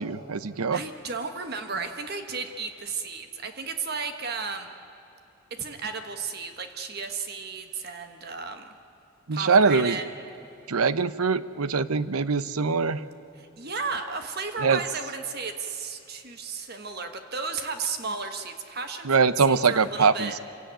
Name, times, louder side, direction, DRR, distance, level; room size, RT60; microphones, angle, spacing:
voice 1, 0.0-0.8 9.3-10.0 10.7-13.0 14.6-14.8 19.0-20.4, right 5 dB, 90° right, 15 dB, 0.8 m, -23 dB
voice 2, 0.7-4.7 5.5-8.7 9.3-10.1 13.3-20.3, right 4 dB, 45° right, 7 dB, 1.3 m, -34 dB
26.5 x 17.0 x 9.1 m, 3.0 s
head